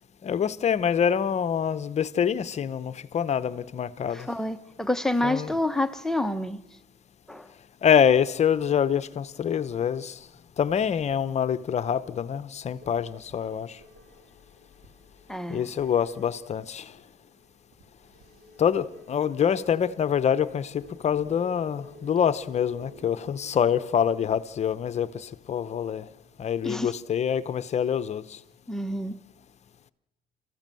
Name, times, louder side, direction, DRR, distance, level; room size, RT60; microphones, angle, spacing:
voice 1, 0.2-4.3 5.2-5.5 7.8-10.1 10.6-13.8 15.5-16.8 18.6-26.0 26.4-28.2, left 8 dB, 40° left, 0.8 m, -25 dB
voice 2, 4.1-6.6 7.3-7.5 15.3-15.6 26.6-26.9 28.7-29.1, left 1 dB, 5° left, 1.0 m, -28 dB
sound 1, 12.8-23.8, left 1 dB, 65° right, 3.9 m, -52 dB
28.0 x 14.5 x 7.7 m
cardioid pair, 110°, 17 cm